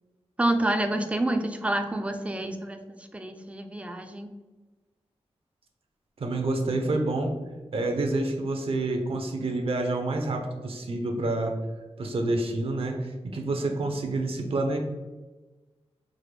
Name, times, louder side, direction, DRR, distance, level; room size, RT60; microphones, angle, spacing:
voice 1, 0.4-4.3, right 1 dB, 10° right, 5 dB, 0.3 m, -28 dB
voice 2, 6.2-7.3 7.7-11.6 12.0-14.8, right 2 dB, 60° right, 4 dB, 0.6 m, -28 dB
4.7 x 2.1 x 3.2 m, 1.2 s
wide cardioid pair, 145°, 11 cm